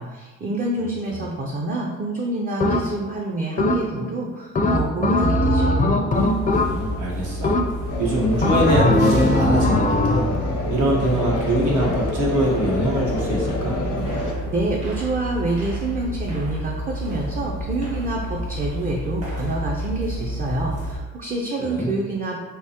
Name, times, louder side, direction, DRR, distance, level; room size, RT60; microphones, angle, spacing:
voice 1, 0.0-5.9 14.3-22.4, right 2 dB, 30° right, -1 dB, 0.5 m, -27 dB
sound 1, 2.6-3.1 3.6-4.1 4.6-7.0 7.4-8.0 8.4-10.4, left 1 dB, 25° left, 0.4 m, -20 dB
sound 2, 6.1-21.0, equal, 55° right, 1.3 m, -30 dB
voice 2, 6.5-7.5 8.0-10.3 10.7-13.8 21.6-21.9, right 1 dB, 80° right, -3 dB, 1.1 m, -23 dB
sound 3, 7.9-14.3, left 2 dB, 80° left, 0.8 m, -28 dB
3.5 x 2.8 x 2.8 m, 1.3 s
cardioid pair, 90°, 30 cm